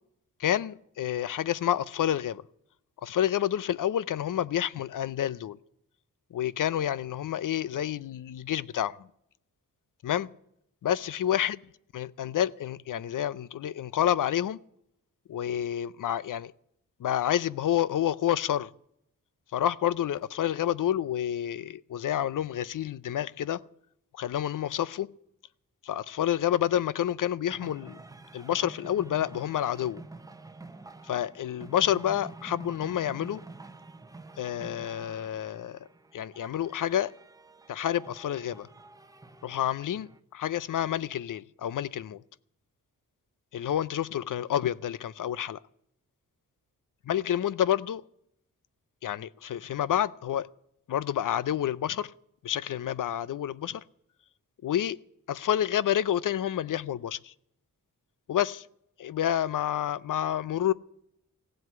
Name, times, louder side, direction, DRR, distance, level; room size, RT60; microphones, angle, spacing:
voice 1, 0.4-2.4 3.0-5.6 6.3-9.1 10.0-10.3 10.8-11.6 11.9-14.6 15.3-16.5 17.0-18.7 19.5-23.6 24.1-25.1 25.8-28.0 28.3-30.0 31.0-33.4 34.4-35.8 36.1-37.1 37.7-38.7 39.4-42.2 43.5-45.6 47.1-48.0 49.0-50.5 50.9-52.1 52.4-53.8 54.6-55.0 55.3-57.3 58.3-58.7 59.0-60.7, left 11 dB, 65° left, 0.6 m, -29 dB
sound 1, 27.5-40.2, right 3 dB, 10° right, 0.8 m, -48 dB
16.0 x 7.8 x 9.4 m
wide cardioid pair, 165°, 35 cm